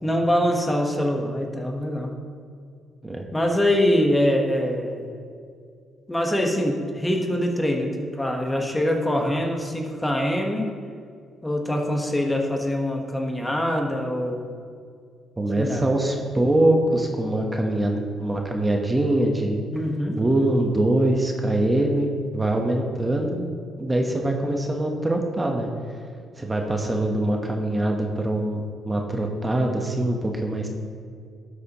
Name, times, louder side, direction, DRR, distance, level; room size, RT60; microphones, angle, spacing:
voice 1, 0.0-2.1 3.3-5.1 6.1-10.7 11.4-14.4 15.6-15.9 19.7-20.2, equal, 10° left, 2 dB, 1.3 m, -24 dB
voice 2, 15.4-19.6 20.2-23.4 23.8-25.7 26.4-30.7, right 1 dB, 20° right, 2 dB, 1.1 m, -23 dB
12.5 x 8.1 x 3.0 m, 2.2 s
cardioid pair, 90°, 0 cm